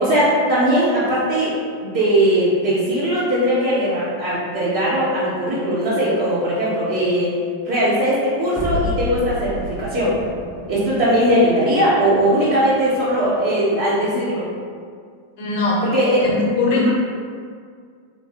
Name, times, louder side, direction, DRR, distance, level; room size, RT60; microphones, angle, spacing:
voice 1, 0.0-7.3 7.6-10.1 10.7-14.5 15.8-16.3 16.7-16.9, equal, 50° right, -11 dB, 1.0 m, -19 dB
sound 1, 8.6-13.7, left 1 dB, 10° right, 0.7 m, -32 dB
voice 2, 15.4-15.8 16.2-16.9, left 3 dB, 45° left, -3 dB, 0.8 m, -21 dB
3.4 x 2.4 x 3.5 m, 2.1 s
figure-of-eight pair, 90°, 0 cm